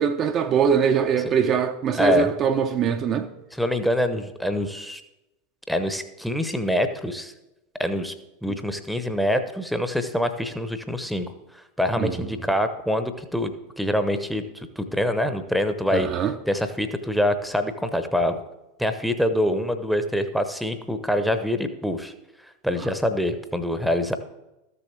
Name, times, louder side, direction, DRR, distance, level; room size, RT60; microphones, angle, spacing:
voice 1, 0.0-3.3 12.0-12.2 15.9-16.3, right 7 dB, 35° right, 0.6 m, -22 dB
voice 2, 2.0-2.3 3.5-5.0 5.7-7.3 7.8-8.1 8.4-11.3 11.8-14.4 14.8-16.1 16.5-18.4 18.8-22.1 22.6-24.2, left 1 dB, ahead, 0.8 m, -25 dB
13.5 x 6.9 x 3.3 m
figure-of-eight pair, 85°, 0 cm